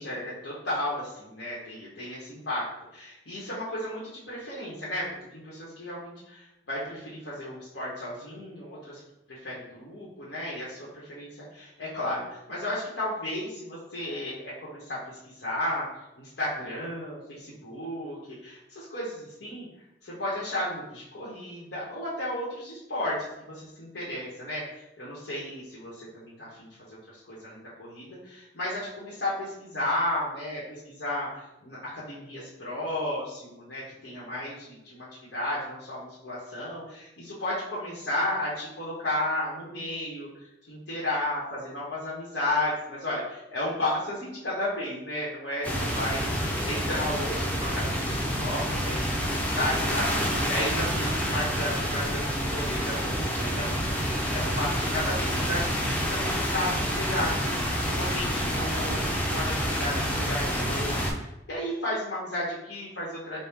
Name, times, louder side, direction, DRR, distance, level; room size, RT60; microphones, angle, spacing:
voice 1, 0.0-2.7 2.9-5.1 5.3-9.0 9.3-19.6 20.0-35.1 35.3-46.2 46.7-63.4, left 1 dB, 90° left, -8 dB, 1.0 m, -33 dB
sound 1, 45.6-61.1, equal, 10° left, 0.5 m, -28 dB
4.3 x 2.0 x 3.5 m, 0.91 s
head